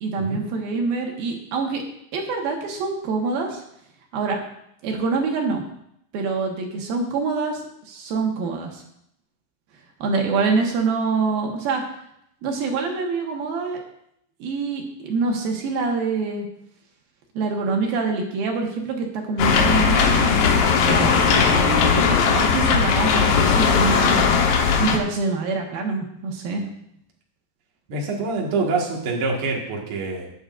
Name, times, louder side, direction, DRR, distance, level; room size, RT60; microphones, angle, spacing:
voice 1, 0.0-1.8 2.1-3.6 4.1-4.4 4.8-5.6 6.1-7.6 7.9-8.8 10.0-11.8 12.4-13.8 14.4-16.5 17.3-24.3 24.8-26.6, right 4 dB, 65° right, 1 dB, 2.6 m, -25 dB
sound 1, 19.4-25.0, left 6 dB, 85° left, 2.0 m, -18 dB
voice 2, 27.9-30.3, right 3 dB, 90° right, -2 dB, 1.2 m, -26 dB
21.5 x 8.0 x 2.6 m, 0.75 s
omnidirectional pair, 5.6 m